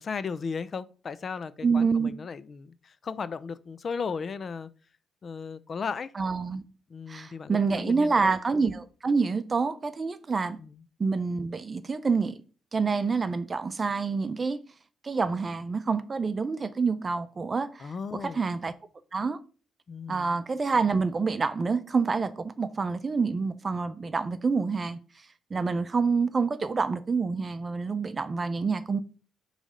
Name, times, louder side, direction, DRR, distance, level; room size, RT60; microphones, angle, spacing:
voice 1, 0.0-4.7 5.2-6.1 6.9-8.3 10.6-10.8 17.8-18.4 19.9-20.3, left 5 dB, 45° left, 0.5 m, -36 dB
voice 2, 1.6-2.1 6.2-6.6 7.1-10.6 11.0-12.4 12.7-14.6 15.0-17.9 18.2-18.7 19.1-19.4 20.1-25.0 25.5-29.0, right 4 dB, 30° right, 0.6 m, -27 dB
6.3 x 3.3 x 5.1 m
cardioid pair, 90°, 0 cm